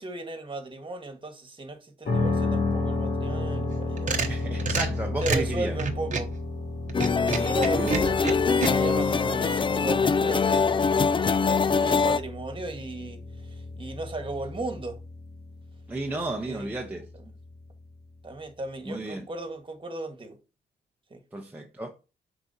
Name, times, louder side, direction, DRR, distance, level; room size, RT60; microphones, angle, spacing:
voice 1, 0.0-4.2 5.2-6.3 7.3-15.0 16.1-17.3 18.2-20.4 21.1-21.2, right 2 dB, 25° right, 1.7 m, -36 dB
sound 1, 2.1-17.9, left 2 dB, 55° left, 2.6 m, -33 dB
sound 2, 3.7-6.4 6.9-8.7, right 5 dB, 45° right, 1.0 m, -29 dB
voice 2, 4.3-5.7 7.6-7.9 15.9-17.0 18.9-19.2 21.3-21.9, right 2 dB, 10° right, 1.0 m, -33 dB
sound 3, 6.9-12.2, left 5 dB, 25° left, 0.4 m, -23 dB
6.9 x 5.0 x 2.8 m
cardioid pair, 100°, 19 cm